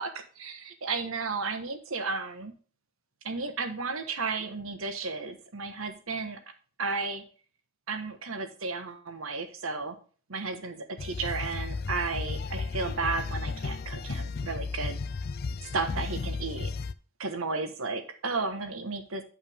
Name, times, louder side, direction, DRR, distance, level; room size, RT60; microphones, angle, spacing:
voice 1, 0.0-2.5 3.2-6.4 6.8-7.2 7.9-9.9 10.3-15.0 15.6-16.7 17.2-19.2, right 4 dB, 75° right, 7 dB, 1.3 m, -33 dB
sound 1, 11.0-16.9, left 4 dB, 45° left, 0.4 m, -34 dB
9.2 x 5.4 x 3.5 m, 0.40 s
head